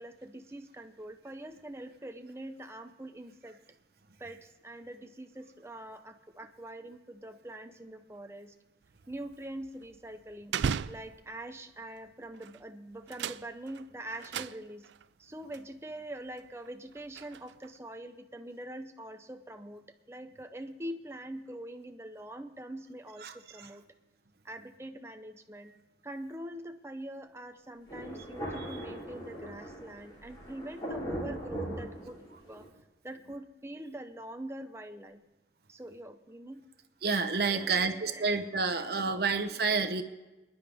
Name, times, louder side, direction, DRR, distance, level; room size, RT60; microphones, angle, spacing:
voice 1, 0.0-3.6 4.2-8.5 9.1-10.6 10.9-14.9 15.2-23.8 24.4-25.8 26.0-32.2 32.5-32.6 33.0-35.2 35.7-36.6 37.4-39.3, right 1 dB, 15° right, 6 dB, 0.6 m, -44 dB
sound 1, 8.8-11.6 12.3-12.6 12.9-15.0 15.5-15.6 16.3-17.8, right 7 dB, 85° right, 0.4 m, -38 dB
Thunder, 27.9-32.7, right 1 dB, 25° left, 3.3 m, -40 dB
voice 2, 37.0-40.0, right 4 dB, 60° right, 7 dB, 0.9 m, -29 dB
26.5 x 10.5 x 3.5 m, 1.1 s
head